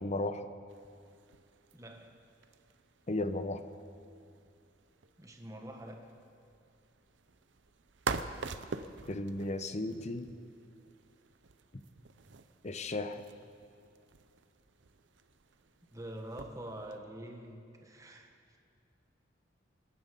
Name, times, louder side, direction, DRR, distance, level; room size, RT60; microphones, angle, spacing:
voice 1, 0.0-0.5 3.1-3.6 9.1-10.3 11.7-11.8 12.6-13.2, left 2 dB, 40° left, 10 dB, 0.8 m, -35 dB
sound 1, 0.7-17.0, right 4 dB, 75° right, 0.7 m, -46 dB
voice 2, 1.7-2.2 5.2-6.1 15.9-18.6, right 1 dB, 20° right, 2 dB, 1.5 m, -46 dB
26.5 x 10.0 x 5.3 m, 2.4 s
head